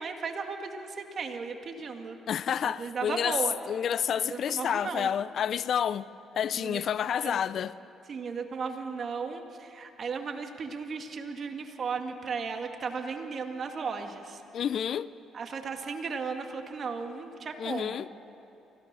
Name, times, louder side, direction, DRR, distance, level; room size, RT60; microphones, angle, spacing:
voice 1, 0.0-2.2 2.6-3.5 4.3-5.1 6.5-6.8 7.2-7.4 8.1-14.4 15.3-18.0, right 5 dB, 50° right, 2.0 m, -35 dB
voice 2, 2.3-3.4 3.7-6.1 6.4-7.7 14.5-15.1 17.6-18.1, left 8 dB, 60° left, 0.5 m, -29 dB
24.5 x 16.5 x 6.8 m
cardioid pair, 80°, 0 cm